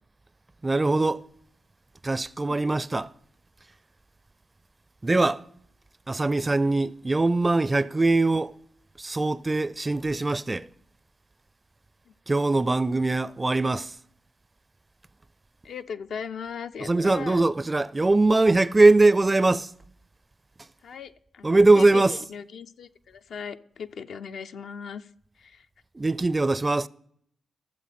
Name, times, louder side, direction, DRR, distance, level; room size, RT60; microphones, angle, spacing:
voice 1, 0.6-1.2 2.0-3.1 5.0-5.4 6.1-8.5 9.0-10.7 12.3-13.9 16.8-19.7 21.4-22.2 26.0-26.9, right 2 dB, 30° right, 0.4 m, -21 dB
voice 2, 15.6-17.4 20.8-25.1 25.4-25.7, left 6 dB, 70° left, 0.5 m, -38 dB
14.0 x 7.2 x 4.2 m
supercardioid pair, 40°, 0 cm